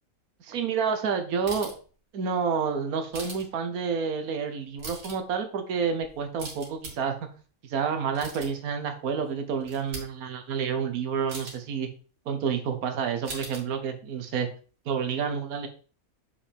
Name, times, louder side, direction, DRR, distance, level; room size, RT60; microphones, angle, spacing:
voice 1, 0.4-1.7 2.1-7.3 7.6-11.9 12.3-14.5 14.8-15.7, right 6 dB, 85° right, 6 dB, 1.4 m, -29 dB
sound 1, 1.5-1.9 3.1-3.5 4.6-5.2 6.0-6.9 7.9-8.7 9.2-9.3 9.6-10.0 11.3-11.6 13.2-13.6, right 2 dB, 70° right, 2.1 m, -40 dB
7.0 x 5.2 x 3.3 m, 0.38 s
omnidirectional pair, 1.5 m